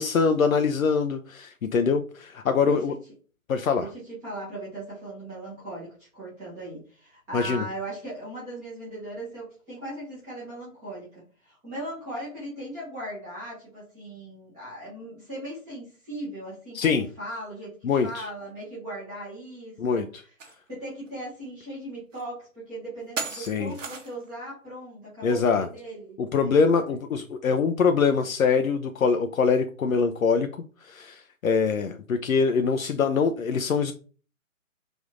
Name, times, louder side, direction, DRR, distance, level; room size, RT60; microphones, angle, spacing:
voice 1, 0.0-2.9 3.5-3.9 7.3-7.7 16.7-17.1 17.8-18.3 19.8-20.2 23.3-23.7 25.2-25.7 26.2-33.9, left 5 dB, 75° left, 7 dB, 0.5 m, -24 dB
voice 2, 2.6-3.0 3.8-20.1 20.7-27.0, right 1 dB, 5° right, -9 dB, 0.7 m, -38 dB
sound 1, 20.4-20.5 21.0-21.1 22.1-22.2 23.2-24.3, right 5 dB, 60° right, 0.9 m, -35 dB
3.4 x 2.5 x 3.6 m, 0.39 s
figure-of-eight pair, 145°, 42 cm